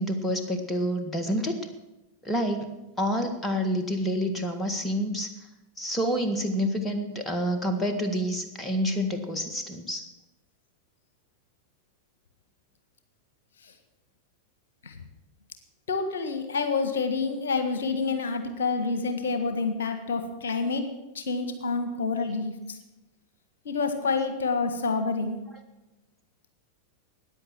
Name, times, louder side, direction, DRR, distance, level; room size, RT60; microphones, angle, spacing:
voice 1, 0.0-1.5 2.3-2.7 3.0-5.3 5.8-10.1, equal, 15° left, 6 dB, 1.8 m, -28 dB
voice 2, 15.9-20.9 21.1-22.5 23.6-25.4, left 4 dB, 65° left, 8 dB, 1.6 m, -28 dB
14.5 x 9.8 x 7.5 m, 1.0 s
figure-of-eight pair, 90°, 0 cm